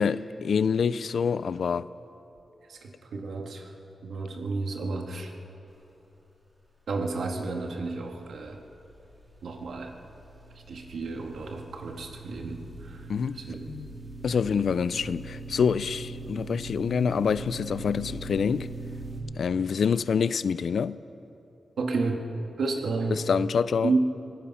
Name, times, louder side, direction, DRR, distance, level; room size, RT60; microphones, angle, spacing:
voice 1, 0.0-1.9 13.1-13.4 13.7-13.9 14.2-18.7 19.4-21.0 23.3-23.9, left 6 dB, 70° left, 0.5 m, -26 dB
voice 2, 2.6-3.7 4.0-5.3 6.9-8.6 9.4-9.9 10.5-13.7 21.8-22.3 22.6-23.2 23.8-24.0, right 3 dB, 80° right, 2.1 m, -32 dB
sound 1, 8.3-19.2, right 2 dB, 20° right, 3.6 m, -41 dB
24.5 x 18.5 x 5.7 m
wide cardioid pair, 125°, 0 cm